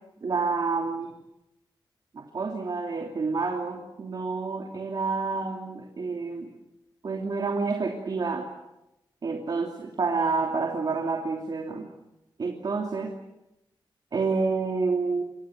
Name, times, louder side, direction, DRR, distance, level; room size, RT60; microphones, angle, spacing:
voice 1, 0.2-1.2 2.1-6.5 7.0-8.5 9.2-11.9 12.4-13.1 14.1-15.2, right 4 dB, 55° right, 2 dB, 3.0 m, -28 dB
29.5 x 26.0 x 6.6 m, 0.93 s
wide cardioid pair, 165°, 8 cm